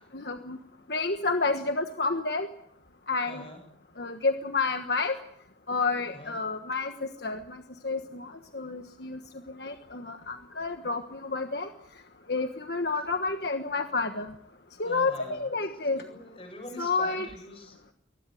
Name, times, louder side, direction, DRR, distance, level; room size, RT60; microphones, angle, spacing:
voice 1, 0.1-0.6 0.9-2.5 3.1-3.4 4.0-5.2 5.7-6.9 7.2-7.4 7.8-8.3 8.5-9.2 9.6-11.7 12.3-14.3 14.8-16.0 16.8-17.3, left 3 dB, 65° left, 6 dB, 1.4 m, -29 dB
voice 2, 3.3-3.6 6.1-6.4 12.9-13.1 14.8-15.6 15.9-17.8, left 1 dB, 30° left, 5 dB, 7.4 m, -45 dB
23.5 x 19.5 x 7.7 m, 0.69 s
head